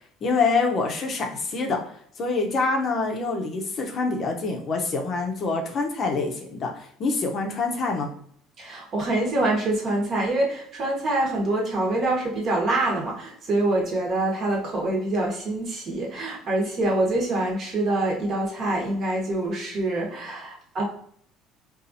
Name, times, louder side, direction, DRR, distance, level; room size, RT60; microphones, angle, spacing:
voice 1, 0.2-1.8 2.2-8.1, left 3 dB, 40° left, 3 dB, 0.6 m, -26 dB
voice 2, 8.6-20.8, right 2 dB, 40° right, -1 dB, 1.0 m, -25 dB
4.0 x 2.4 x 2.6 m, 0.64 s
cardioid pair, 130°, 0 cm